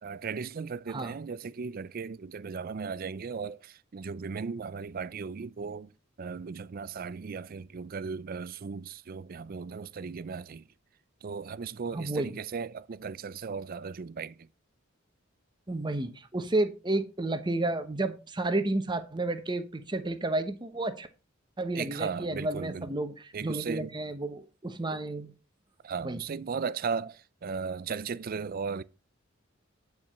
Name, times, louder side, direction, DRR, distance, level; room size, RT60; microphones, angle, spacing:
voice 1, 0.0-5.9 6.2-10.6 11.2-14.5 21.7-23.0 23.3-23.9 25.8-28.8, right 5 dB, 45° right, 0.4 m, -36 dB
voice 2, 11.9-12.3 15.7-21.1 21.6-25.3 26.0-26.2, right 2 dB, 20° right, 0.9 m, -31 dB
9.6 x 4.7 x 5.4 m
head